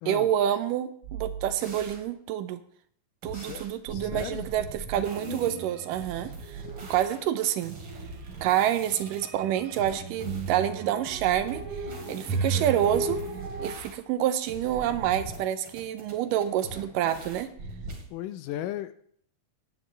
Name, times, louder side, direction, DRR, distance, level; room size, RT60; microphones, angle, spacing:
voice 1, 0.1-2.6 3.2-6.6 6.9-7.8 8.4-13.2 13.6-17.5, right 11 dB, 80° right, 11 dB, 2.1 m, -28 dB
sound 1, 1.0-2.0 3.2-5.5 5.9-9.3 9.8-10.6 11.1-14.2 14.5-15.4 15.7-18.0, right 3 dB, 40° right, 3.0 m, -41 dB
voice 2, 3.3-3.7 3.9-4.5 6.6-6.7 18.1-18.9, left 12 dB, 80° left, 11 dB, 2.0 m, -36 dB
sound 2, 5.1-6.1 6.4-7.0 7.7-13.7, right 4 dB, 65° right, 3.1 m, -35 dB
16.5 x 10.5 x 3.3 m, 0.64 s
omnidirectional pair, 4.1 m